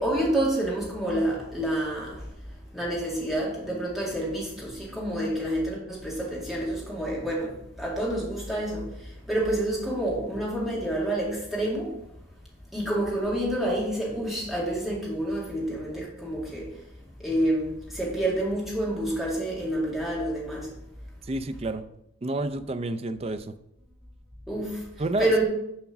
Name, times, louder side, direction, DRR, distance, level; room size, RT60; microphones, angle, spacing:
voice 1, 0.0-2.2 2.7-7.5 7.8-8.8 9.3-11.9 12.7-16.7 17.2-20.7 24.5-24.8 25.2-25.4, right 1 dB, ahead, -5 dB, 2.3 m, -28 dB
voice 2, 21.3-21.9 22.2-23.6 25.0-25.3, right 2 dB, 30° right, 10 dB, 0.4 m, -29 dB
7.2 x 5.0 x 5.9 m, 0.81 s
head